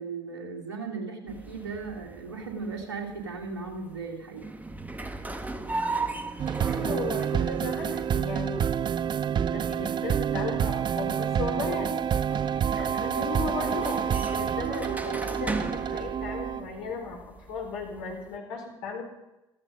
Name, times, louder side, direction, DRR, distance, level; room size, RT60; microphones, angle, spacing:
voice 1, 0.0-4.5, right 4 dB, 80° right, 2 dB, 2.6 m, -36 dB
sound 1, 1.3-18.3, right 2 dB, 10° right, 1.5 m, -38 dB
sound 2, 6.4-16.8, right 8 dB, 35° right, 0.5 m, -28 dB
voice 2, 6.6-8.7 9.3-12.0 12.7-15.6 15.9-19.0, left 4 dB, 65° left, 1 dB, 4.6 m, -36 dB
16.0 x 14.5 x 5.5 m, 0.96 s
figure-of-eight pair, 60°, 14 cm